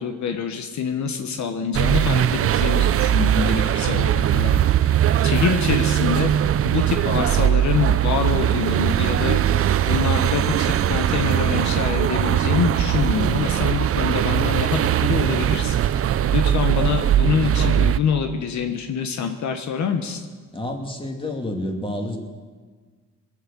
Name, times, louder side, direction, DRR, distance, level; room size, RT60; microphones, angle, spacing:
voice 1, 0.0-4.5 4.8-5.0 5.2-6.3 6.6-9.4 9.9-15.8 16.3-20.2, left 7 dB, 70° left, 6 dB, 1.2 m, -25 dB
sound 1, 1.7-18.0, right 10 dB, 50° right, 0.5 m, -20 dB
voice 2, 20.5-22.2, left 1 dB, 15° left, 2 dB, 2.6 m, -29 dB
20.5 x 7.9 x 7.0 m, 1.5 s
cardioid pair, 90°, 30 cm